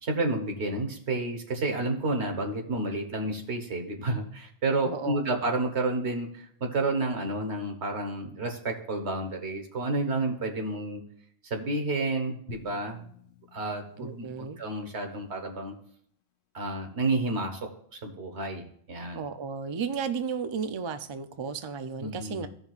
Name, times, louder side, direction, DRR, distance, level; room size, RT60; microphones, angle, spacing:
voice 1, 0.0-11.0 11.4-13.0 13.5-15.7 16.5-18.6 18.9-19.2 22.0-22.5, right 2 dB, 90° right, 4 dB, 1.5 m, -30 dB
voice 2, 4.9-5.4 14.0-14.6 19.1-22.5, right 6 dB, 40° right, 9 dB, 0.4 m, -34 dB
Drum, 12.5-15.4, left 2 dB, 55° left, 1.0 m, -51 dB
15.0 x 5.3 x 2.4 m, 0.64 s
omnidirectional pair, 1.1 m